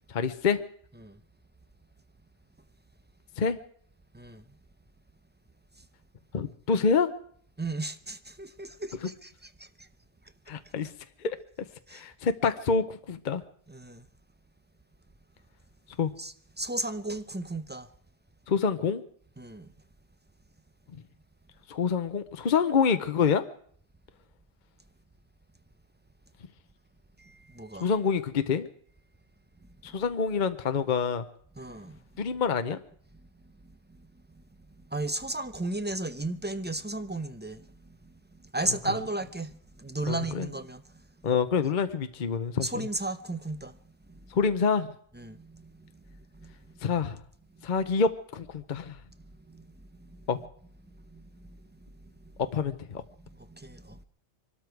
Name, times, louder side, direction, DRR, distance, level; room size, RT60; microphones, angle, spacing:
voice 1, 0.1-0.6 3.4-3.6 6.3-7.1 9.0-9.1 10.5-10.9 11.2-11.4 11.9-13.4 16.0-16.1 18.5-19.0 21.7-23.4 27.8-28.7 29.8-31.2 32.2-32.8 40.1-40.5 41.2-42.7 44.3-44.9 46.8-47.2 47.6-49.0 50.3-50.4 52.5-53.0, left 5 dB, 45° left, 0.9 m, -26 dB
voice 2, 4.1-4.4 7.6-9.9 11.9-12.1 13.7-14.1 16.2-17.9 19.4-19.7 27.2-27.9 31.6-32.0 34.9-37.7 38.0-38.1 38.5-40.8 42.6-43.8 44.1-44.3 45.1-46.5 49.5-49.7 50.0-50.3 51.1-51.6 52.0-52.1 53.3-54.0, right 2 dB, 10° right, 0.5 m, -35 dB
24.0 x 13.0 x 4.7 m
omnidirectional pair, 1.2 m